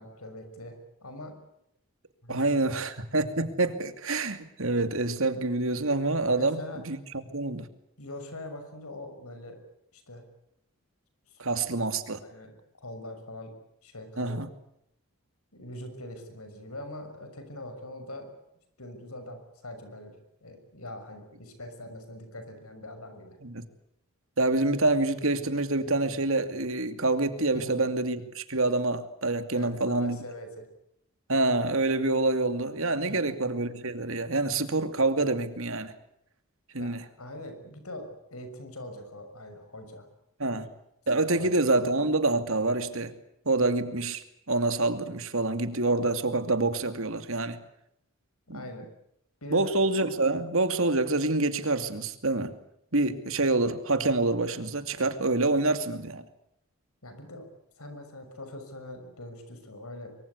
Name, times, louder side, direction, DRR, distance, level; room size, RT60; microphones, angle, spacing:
voice 1, 0.0-1.4 2.2-2.7 6.3-6.8 8.0-9.6 9.9-10.2 11.3-11.4 12.2-13.5 13.8-14.4 15.5-18.4 18.8-20.2 20.4-23.4 27.5-27.9 29.5-30.7 33.1-33.4 36.8-40.1 40.5-40.6 41.3-41.5 41.8-41.9 48.5-48.9 49.4-49.8 57.0-57.5 57.8-60.1, left 1 dB, 80° left, 8 dB, 6.3 m, -42 dB
voice 2, 2.3-7.7 11.4-12.2 14.2-14.5 23.4-23.6 24.4-30.2 31.3-35.9 36.7-37.1 40.4-40.6 41.1-43.1 43.5-47.6 48.5-48.6 49.5-52.6 52.9-56.2, right 2 dB, 65° right, 9 dB, 2.5 m, -27 dB
24.5 x 24.0 x 8.3 m, 0.77 s
head